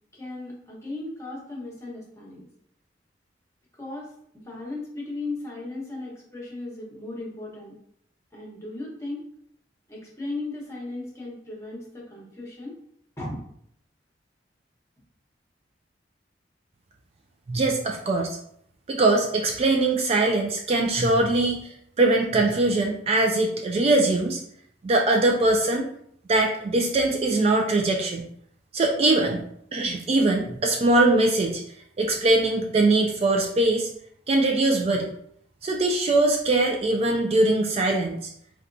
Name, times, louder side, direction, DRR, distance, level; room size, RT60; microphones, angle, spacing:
voice 1, 0.1-2.4 3.7-4.1 4.4-7.8 8.3-9.3 9.9-12.8 13.2-13.4, left 2 dB, 15° left, -3 dB, 0.9 m, -36 dB
voice 2, 17.5-18.4 18.9-21.7 22.0-24.4 24.8-25.9 26.3-28.3 28.7-29.4 29.7-31.6 32.0-33.9 34.3-35.1 35.6-38.3, right 2 dB, 35° right, 2 dB, 0.3 m, -22 dB
4.1 x 2.2 x 2.5 m, 0.69 s
head